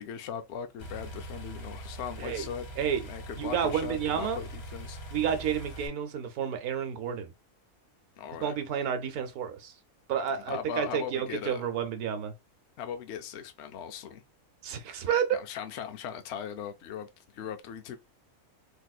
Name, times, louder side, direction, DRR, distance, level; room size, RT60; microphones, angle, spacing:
voice 1, 0.0-2.7 3.0-5.0 8.2-8.6 10.3-11.7 12.8-14.2 15.3-17.1 17.3-18.0, left 8 dB, 60° left, 0.8 m, -39 dB
sound 1, 0.8-5.9, right 1 dB, 90° left, 1.5 m, -42 dB
voice 2, 3.4-4.4 5.1-7.3 8.4-9.7 10.1-12.3 14.6-15.3, right 8 dB, 90° right, 1.2 m, -30 dB
3.4 x 2.9 x 2.3 m
omnidirectional pair, 1.5 m